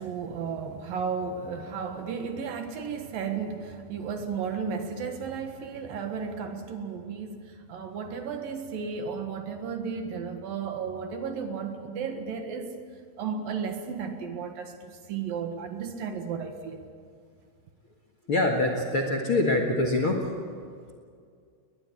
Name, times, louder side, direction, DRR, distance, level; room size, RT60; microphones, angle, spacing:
voice 1, 0.0-7.4 7.7-12.7 13.2-16.9, right 6 dB, 65° right, 5 dB, 3.1 m, -34 dB
voice 2, 18.3-20.2, left 2 dB, 45° left, 2 dB, 1.9 m, -24 dB
21.5 x 20.5 x 8.7 m, 2.2 s
omnidirectional pair, 4.7 m